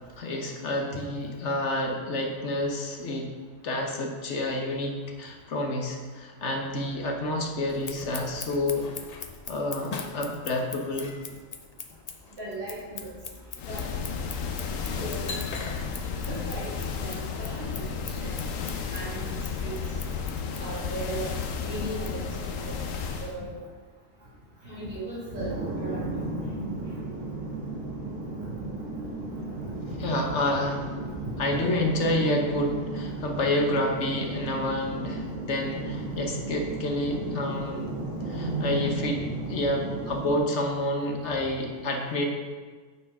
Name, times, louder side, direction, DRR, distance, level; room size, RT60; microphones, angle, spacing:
voice 1, 0.2-3.3 3.6-8.9 9.5-11.1 30.0-30.8 31.4-37.9 38.3-39.2 39.5-42.2, left 1 dB, 65° left, 1 dB, 1.4 m, -29 dB
Scissors, 7.7-23.0, left 5 dB, 45° left, 0.5 m, -43 dB
voice 2, 12.4-13.2 13.7-13.8 15.0-15.3 16.3-16.7 17.0-17.1 17.4-18.3 18.9-19.8 20.6-21.3 21.6-22.7 23.2-23.6 24.6-26.3 31.5-31.6, right 2 dB, 55° right, -9 dB, 3.2 m, -37 dB
sound 1, 13.6-23.4, left 5 dB, 85° left, 1.1 m, -33 dB
sound 2, 25.3-40.3, right 2 dB, 80° right, 2.4 m, -34 dB
8.8 x 4.7 x 5.4 m, 1.5 s
omnidirectional pair, 1.3 m